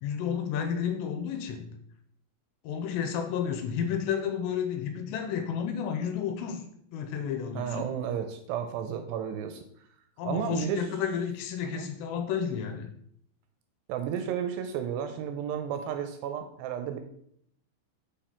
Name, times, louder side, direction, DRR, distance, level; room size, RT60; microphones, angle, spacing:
voice 1, 0.0-1.7 2.6-6.6 6.9-7.9 10.2-12.9, left 8 dB, 85° left, 5 dB, 2.8 m, -31 dB
voice 2, 7.6-9.6 10.2-10.9 11.6-11.9 13.9-17.0, right 8 dB, 80° right, 7 dB, 2.6 m, -32 dB
6.7 x 5.8 x 4.4 m, 0.69 s
omnidirectional pair, 5.3 m